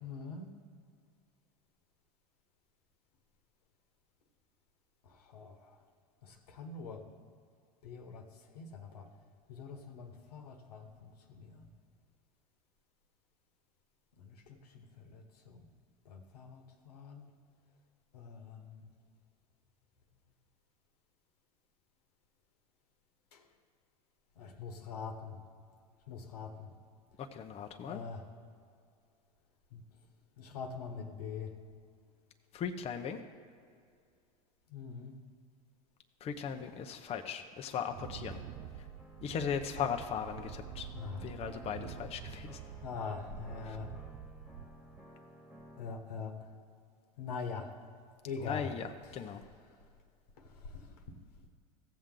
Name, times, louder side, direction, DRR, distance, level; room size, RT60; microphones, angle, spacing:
voice 1, 0.0-0.5 5.0-5.8 6.2-7.0 7.8-8.3 8.5-9.1 9.5-11.7 14.2-15.6 16.0-17.3 18.1-18.9 23.3-23.4 24.4-25.4 26.1-26.7 27.8-28.2 29.7-29.8 30.4-31.5 34.7-35.1 40.9-41.3 42.8-43.9 45.8-46.3 47.2-47.7 48.2-48.7 50.4-51.1, left 5 dB, 80° left, 5 dB, 1.3 m, -44 dB
voice 2, 27.2-28.0 32.5-33.2 36.2-38.4 39.2-40.9 41.2-42.6 43.6-43.8 48.4-49.4, left 7 dB, 30° left, 5 dB, 0.7 m, -38 dB
Wind, 37.9-45.0, right 10 dB, 55° right, 0.5 m, -47 dB
sound 1, 38.0-46.0, left 1 dB, ahead, 1.5 m, -55 dB
15.5 x 7.4 x 3.8 m, 2.3 s
hypercardioid pair, 90°, 20 cm